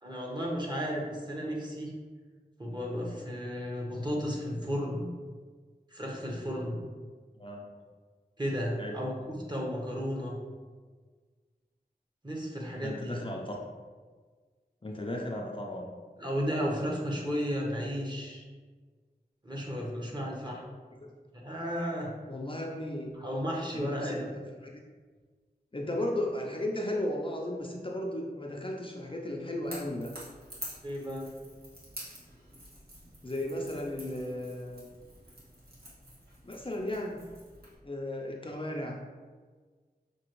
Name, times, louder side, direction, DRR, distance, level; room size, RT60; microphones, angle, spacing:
voice 1, 0.0-1.9 2.6-5.1 5.9-6.8 8.4-10.4 12.2-13.2 16.2-18.4 19.4-20.6 21.3-22.1 23.2-24.3 30.8-31.2, equal, 25° right, -2 dB, 1.0 m, -33 dB
voice 2, 12.8-13.6 14.8-15.9 21.0-21.1 22.3-23.1 23.7-24.7 25.7-30.1 33.2-34.9 36.4-37.2 37.8-39.0, left 1 dB, 30° left, -1 dB, 0.5 m, -35 dB
Crackle / Crack, 29.6-37.8, right 1 dB, 70° right, 1.4 m, -48 dB
6.0 x 2.8 x 3.0 m, 1.5 s
wide cardioid pair, 65°, 17 cm